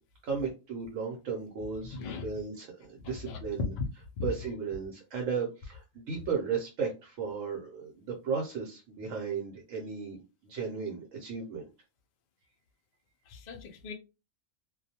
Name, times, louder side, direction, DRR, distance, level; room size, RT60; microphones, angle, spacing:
voice 1, 0.2-3.7 4.2-11.6, right 5 dB, 75° right, 1.0 m, -35 dB
voice 2, 1.9-2.3 3.0-3.4 3.8-3.9 4.2-4.3 13.3-13.9, left 5 dB, 75° left, 0.4 m, -38 dB
2.4 x 2.2 x 2.7 m
omnidirectional pair, 1.3 m